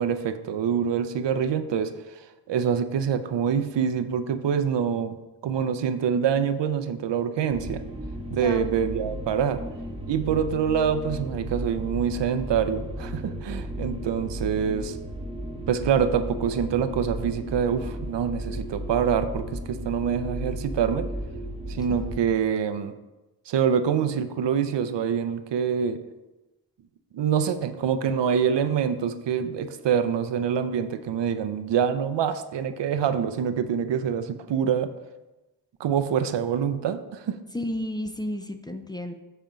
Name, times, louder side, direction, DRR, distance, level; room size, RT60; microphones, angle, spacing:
voice 1, 0.0-2.2 2.5-5.2 5.4-7.8 8.3-9.6 10.1-15.0 15.7-21.1 21.7-22.9 23.5-26.0 27.1-34.9 35.8-37.4, right 7 dB, 90° right, 10 dB, 0.6 m, -25 dB
sound 1, 7.5-22.2, equal, 15° right, 1.2 m, -34 dB
voice 2, 37.5-39.1, left 1 dB, 10° left, 6 dB, 0.5 m, -32 dB
7.4 x 4.4 x 5.1 m, 1.0 s
wide cardioid pair, 105°, 42 cm